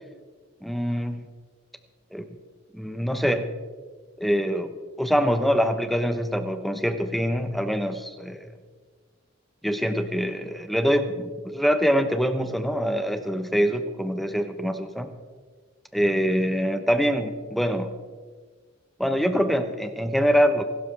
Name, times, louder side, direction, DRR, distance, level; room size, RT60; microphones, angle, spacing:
voice 1, 0.6-1.3 2.1-2.3 2.7-3.5 4.2-4.7 5.0-8.5 9.6-15.1 15.9-17.9 19.0-20.6, equal, ahead, 8 dB, 0.9 m, -24 dB
24.0 x 12.5 x 3.4 m, 1.5 s
head